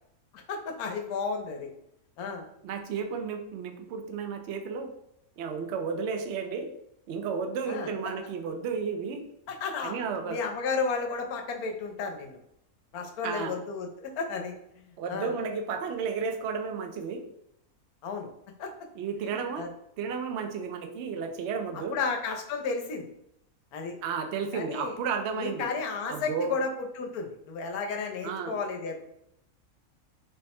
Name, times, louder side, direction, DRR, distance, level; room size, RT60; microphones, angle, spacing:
voice 1, 0.3-1.7 2.2-2.5 7.7-7.9 9.5-10.0 10.3-12.4 12.9-14.8 15.1-15.3 18.0-18.3 18.6-18.7 19.2-19.7 21.9-23.1 23.7-24.0 24.5-24.9 25.4-29.0, left 4 dB, 90° left, 3 dB, 1.1 m, -33 dB
voice 2, 2.6-4.9 5.4-6.7 7.1-9.2 9.8-10.4 13.2-13.6 15.0-17.2 19.0-19.7 20.0-22.0 24.0-25.7 26.1-26.6 28.2-28.6, right 5 dB, 65° right, 5 dB, 0.7 m, -32 dB
3.4 x 2.1 x 4.1 m, 0.78 s
omnidirectional pair, 1.5 m